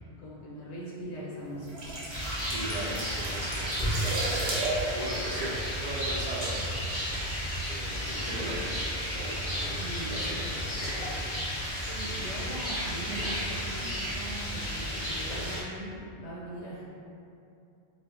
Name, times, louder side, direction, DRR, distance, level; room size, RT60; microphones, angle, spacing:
voice 1, 0.2-2.0 8.5-8.6 9.6-10.2 11.7-16.8, right 1 dB, 80° left, -6 dB, 0.9 m, -41 dB
sound 1, 1.5-6.3 6.6-6.8, right 2 dB, 75° right, 0.9 m, -34 dB
sound 2, 1.8-3.8 4.1-4.8 5.3-6.2 6.4-6.5 6.9-8.6 9.3-9.9 10.4-11.3 11.6-14.9, equal, 20° right, 0.7 m, -44 dB
Rain, 2.1-15.6, equal, 35° left, 0.8 m, -33 dB
voice 2, 2.5-7.3 7.6-8.9 9.2-10.7, right 1 dB, 55° right, -4 dB, 0.5 m, -39 dB
2.0 x 2.0 x 3.5 m, 2.6 s
omnidirectional pair, 1.1 m